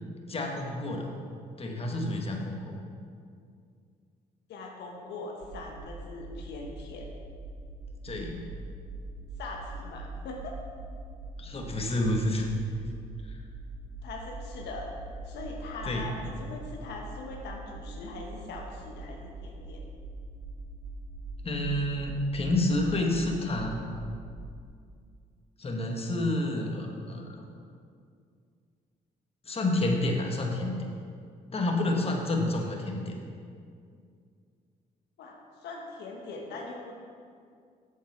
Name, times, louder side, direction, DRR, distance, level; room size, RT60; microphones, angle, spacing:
voice 1, 0.3-1.1 1.6-2.8 8.0-8.4 11.4-12.5 13.2-13.4 15.9-16.1 21.4-23.8 25.6-27.4 29.4-30.9 31.5-33.2, left 1 dB, 35° left, 1 dB, 1.4 m, -29 dB
voice 2, 4.5-7.1 9.4-10.6 14.0-14.9 15.2-19.8 35.2-37.0, left 3 dB, 75° left, 0 dB, 1.1 m, -41 dB
sound 1, 5.4-24.6, right 2 dB, 80° right, 1.5 m, -42 dB
7.8 x 7.1 x 4.5 m, 2.3 s
supercardioid pair, 70°, 18 cm